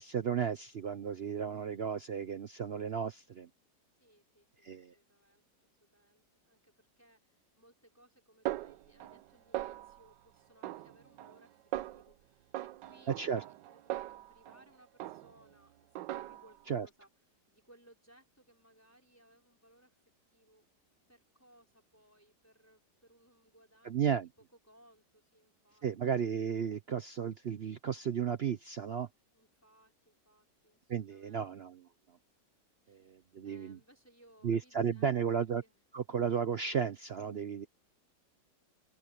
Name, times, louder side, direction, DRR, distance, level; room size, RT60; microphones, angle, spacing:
voice 1, 0.0-3.5 4.6-4.9 13.2-13.4 16.7-16.9 23.8-24.3 25.8-29.1 30.9-31.9 32.9-33.8 34.4-35.6 35.9-37.7, right 7 dB, 65° right, 0.6 m, -34 dB
voice 2, 4.0-5.4 5.8-17.1 17.5-20.0 20.3-20.7 21.1-25.9 29.3-31.5 32.8-35.8, right 1 dB, 10° left, 4.7 m, -64 dB
Snare drum, 8.5-9.3 9.5-10.1 10.6-11.4 11.7-12.1 12.5-14.6 15.0-15.5 16.0-16.6, right 15 dB, 90° right, 1.3 m, -40 dB
open air
omnidirectional pair, 1.9 m